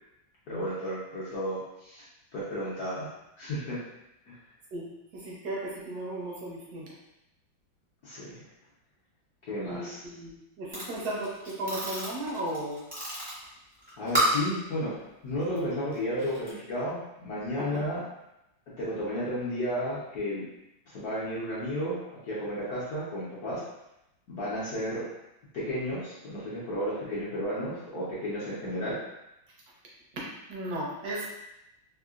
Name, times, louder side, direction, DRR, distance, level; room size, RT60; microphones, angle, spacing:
voice 1, 0.5-2.0 2.3-3.1 3.4-3.8 4.3-4.4 8.0-8.4 9.5-10.0 14.0-15.0 15.2-18.0 18.8-20.4 20.9-22.0 22.2-23.6 24.3-25.1 25.5-29.0, equal, 60° left, -9 dB, 1.1 m, -33 dB
voice 2, 5.1-6.9 9.6-12.8 17.6-17.8 30.5-31.3, right 1 dB, 65° right, -4 dB, 1.0 m, -35 dB
sound 1, 10.7-14.5 15.4-15.6 15.9-16.5, right 1 dB, 40° right, 0.3 m, -33 dB
3.7 x 2.3 x 2.4 m, 0.88 s
omnidirectional pair, 2.2 m